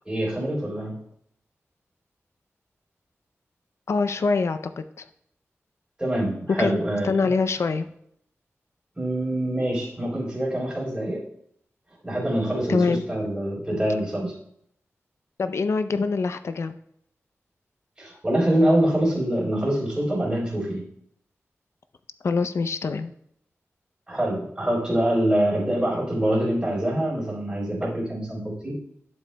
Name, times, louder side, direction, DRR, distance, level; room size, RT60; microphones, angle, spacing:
voice 1, 0.1-0.9 6.0-7.3 9.0-11.2 12.0-14.3 18.0-20.8 24.1-28.7, right 1 dB, 15° right, -9 dB, 3.7 m, -25 dB
voice 2, 3.9-5.1 6.6-6.7 7.0-7.9 12.7-13.0 15.4-16.8 22.2-23.1, left 4 dB, 65° left, 10 dB, 0.5 m, -24 dB
12.0 x 7.5 x 2.2 m, 0.71 s
wide cardioid pair, 105°, 5 cm